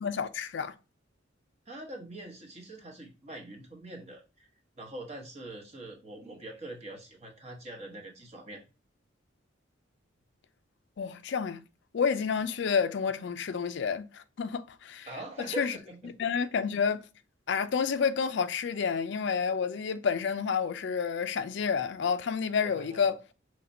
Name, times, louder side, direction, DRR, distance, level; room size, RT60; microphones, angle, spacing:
voice 1, 0.0-0.7 11.0-11.6 11.9-15.1 15.6-15.7 16.2-17.0 17.5-23.2, left 6 dB, 60° left, 0.4 m, -29 dB
voice 2, 1.7-4.5 4.7-8.6 15.1-16.0 22.6-23.0, right 1 dB, 35° right, 1.0 m, -43 dB
5.8 x 3.1 x 2.6 m
head